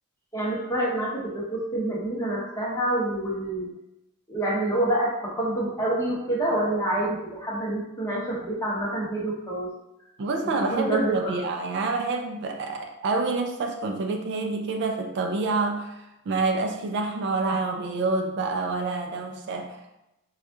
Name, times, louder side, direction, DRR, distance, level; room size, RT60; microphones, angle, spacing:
voice 1, 0.3-3.7 4.3-9.7 10.4-11.3, right 1 dB, 15° left, -5 dB, 0.8 m, -27 dB
voice 2, 10.2-19.8, right 3 dB, 50° right, 3 dB, 0.4 m, -27 dB
4.7 x 2.3 x 2.6 m, 0.92 s
head